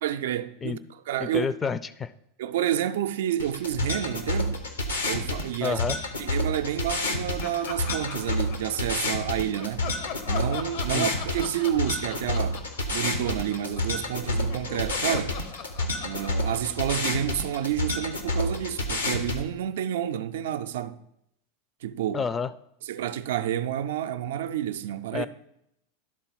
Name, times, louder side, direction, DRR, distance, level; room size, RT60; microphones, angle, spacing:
voice 1, 0.0-0.8 1.1-1.5 2.4-4.6 5.0-5.8 6.2-9.9 10.3-15.4 16.0-21.0 21.8-22.2 22.8-25.3, right 10 dB, 65° right, 0.4 m, -29 dB
voice 2, 1.2-2.1 5.6-6.0 10.9-11.1 22.1-22.5 25.1-25.3, left 5 dB, 20° left, 0.4 m, -29 dB
sound 1, 3.4-19.4, left 1 dB, 85° left, 0.9 m, -29 dB
Laughter, 7.4-9.1 9.6-14.0 14.2-17.8, left 7 dB, 55° left, 0.7 m, -41 dB
11.0 x 4.0 x 4.0 m
figure-of-eight pair, 90°, 0 cm